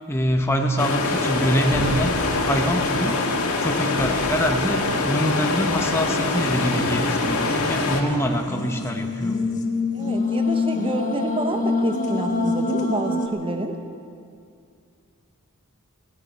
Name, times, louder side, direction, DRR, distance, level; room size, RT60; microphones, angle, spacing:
voice 1, 0.1-2.1 2.4-3.2 3.6-9.4, equal, 10° left, 3 dB, 0.9 m, -24 dB
sound 1, 0.8-8.0, left 3 dB, 85° left, 1.8 m, -24 dB
sound 2, 1.7-3.3 4.0-5.2 5.9-6.3 7.6-8.0, right 1 dB, 50° right, 1.4 m, -36 dB
sound 3, 6.1-13.3, left 3 dB, 35° left, 1.2 m, -26 dB
voice 2, 9.9-13.8, right 1 dB, 25° right, 5 dB, 1.1 m, -28 dB
16.5 x 9.7 x 9.0 m, 2.4 s
head